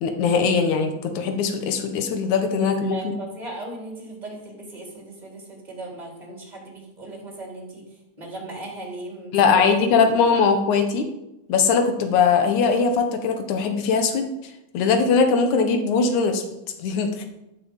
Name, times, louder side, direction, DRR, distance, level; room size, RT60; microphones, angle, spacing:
voice 1, 0.0-3.0 9.3-11.1 11.5-14.3 14.7-16.4 16.8-17.3, left 5 dB, 85° left, 6 dB, 2.8 m, -20 dB
voice 2, 2.8-10.1, right 2 dB, 15° right, -1 dB, 4.0 m, -37 dB
13.0 x 8.6 x 7.4 m, 0.91 s
omnidirectional pair, 3.3 m